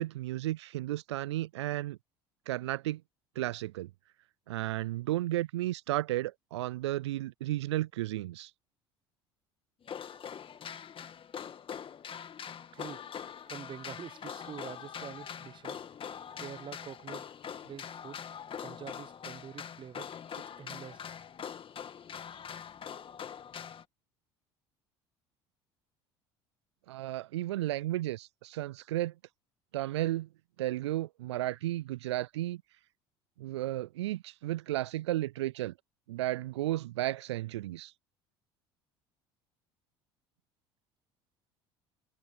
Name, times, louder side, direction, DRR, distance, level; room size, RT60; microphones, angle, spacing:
voice 1, 0.0-2.0 2.5-3.0 3.4-3.9 4.5-8.5 26.9-29.1 29.7-30.3 30.6-32.6 33.4-35.7 36.1-37.9, right 15 dB, 85° right, 0.4 m, -33 dB
sound 1, 9.8-23.8, left 8 dB, 40° left, 2.0 m, -43 dB
voice 2, 12.7-13.1 13.5-15.9 16.4-17.3 17.6-18.3 18.6-21.0, right 8 dB, 35° right, 0.7 m, -46 dB
hypercardioid pair, 70°, 14 cm